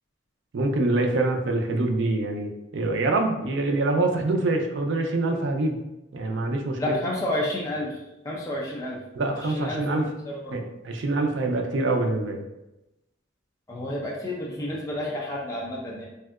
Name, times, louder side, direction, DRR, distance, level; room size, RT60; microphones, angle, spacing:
voice 1, 0.5-5.8 6.1-7.0 9.1-10.1 10.5-12.4, right 2 dB, 75° right, 4 dB, 0.4 m, -25 dB
voice 2, 6.8-7.9 8.3-9.0 9.5-10.0 10.2-10.4 13.7-16.1, left 1 dB, 15° left, -4 dB, 0.4 m, -30 dB
3.3 x 2.7 x 2.3 m, 0.94 s
head